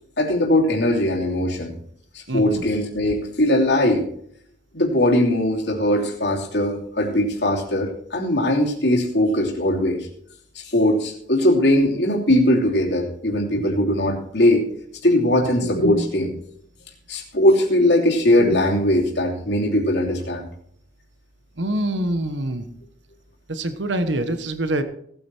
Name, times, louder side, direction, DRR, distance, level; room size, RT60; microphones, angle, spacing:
voice 1, 0.2-1.7 2.1-4.1 4.7-10.1 10.6-14.7 15.0-16.4 17.1-20.5, left 1 dB, 65° left, -2 dB, 3.0 m, -20 dB
voice 2, 2.3-2.6 21.6-22.6 23.5-24.8, right 1 dB, 80° right, 9 dB, 1.2 m, -25 dB
18.0 x 8.8 x 4.5 m, 0.66 s
head